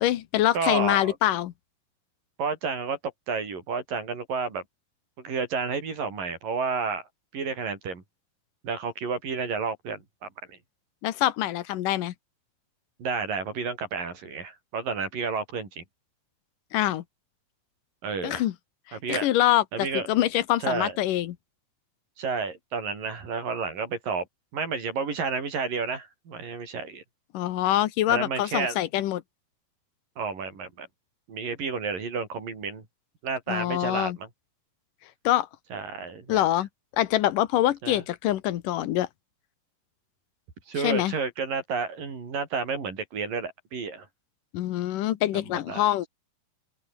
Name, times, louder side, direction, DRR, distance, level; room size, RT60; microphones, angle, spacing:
voice 1, 0.0-1.5 11.0-12.1 16.7-17.0 18.2-18.5 18.9-21.4 27.3-29.2 33.5-34.2 35.2-35.5 36.3-36.7 37.0-39.1 40.8-41.1 44.5-46.1, left 13 dB, 80° left, 2.7 m, -25 dB
voice 2, 0.5-1.2 2.4-3.0 3.3-4.6 5.2-7.1 7.3-8.0 8.6-10.6 13.0-15.8 18.0-18.4 18.9-19.3 19.7-20.1 20.6-20.9 22.2-24.3 24.5-27.0 28.1-28.8 30.2-30.9 31.3-32.8 33.2-34.3 35.7-36.4 37.8-38.0 40.7-44.1 45.7-45.9, right 5 dB, 85° right, 7.1 m, -31 dB
open air
omnidirectional pair, 3.8 m